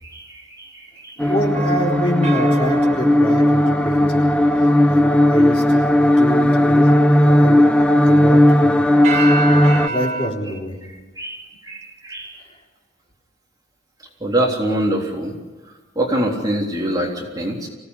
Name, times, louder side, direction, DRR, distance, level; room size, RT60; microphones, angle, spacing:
voice 1, 0.0-1.2 11.2-12.4 14.2-15.3 16.0-17.7, right 1 dB, 20° right, -2 dB, 3.6 m, -24 dB
voice 2, 1.2-4.3 4.6-7.7 8.0-8.8 9.1-10.8, equal, 30° left, -1 dB, 3.9 m, -26 dB
sound 1, 1.2-9.9, left 1 dB, 5° left, 0.9 m, -15 dB
sound 2, 1.5-4.4 9.0-10.3, right 3 dB, 35° right, 1.8 m, -28 dB
25.0 x 17.5 x 9.8 m, 1.2 s
head